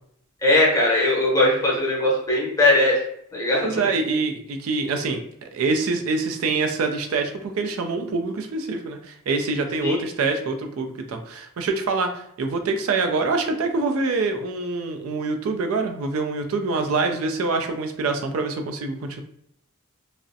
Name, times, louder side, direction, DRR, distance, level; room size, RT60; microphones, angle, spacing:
voice 1, 0.4-3.0 3.3-3.8 9.8-10.0, left 1 dB, 15° left, -4 dB, 0.7 m, -20 dB
voice 2, 3.6-19.2, right 3 dB, 80° right, 5 dB, 0.4 m, -25 dB
2.4 x 2.0 x 2.5 m, 0.71 s
head